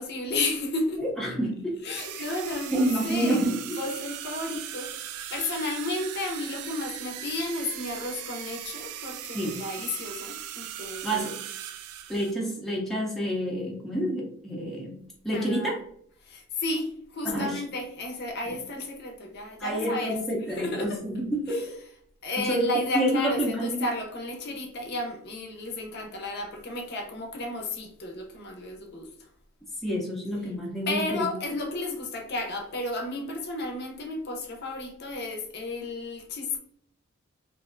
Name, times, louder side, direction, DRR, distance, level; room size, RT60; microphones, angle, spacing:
voice 1, 0.0-1.0 1.8-11.3 15.3-15.8 16.3-20.2 20.6-21.0 22.2-29.1 30.9-36.6, left 2 dB, 50° left, 3 dB, 0.6 m, -33 dB
voice 2, 1.0-1.7 2.7-3.6 9.3-9.6 11.0-11.4 12.1-15.0 15.2-15.7 17.2-17.6 18.5-18.6 19.6-21.8 22.4-23.9 29.8-31.3, right 1 dB, ahead, -4 dB, 0.5 m, -28 dB
sound 1, 2.0-12.3, right 11 dB, 85° right, 0.3 m, -39 dB
3.1 x 2.5 x 2.4 m, 0.65 s
head